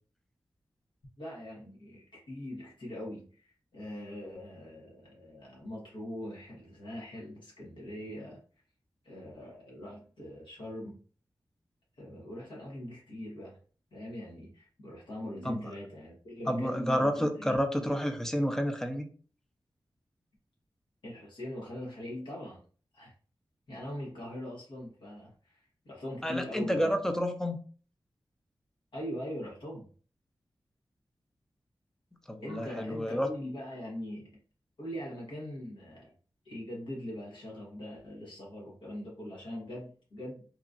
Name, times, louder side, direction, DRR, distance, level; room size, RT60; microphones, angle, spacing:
voice 1, 1.2-8.4 9.0-11.0 12.0-13.6 13.9-17.6 21.0-22.6 22.9-23.1 23.7-26.9 28.9-29.9 32.4-34.3 34.8-36.1 36.4-40.4, left 1 dB, 75° left, -4 dB, 1.1 m, -41 dB
voice 2, 16.5-19.1 26.2-27.6 32.3-33.3, equal, 5° left, 5 dB, 0.5 m, -30 dB
2.9 x 2.5 x 2.4 m, 0.40 s
wide cardioid pair, 75°, 8 cm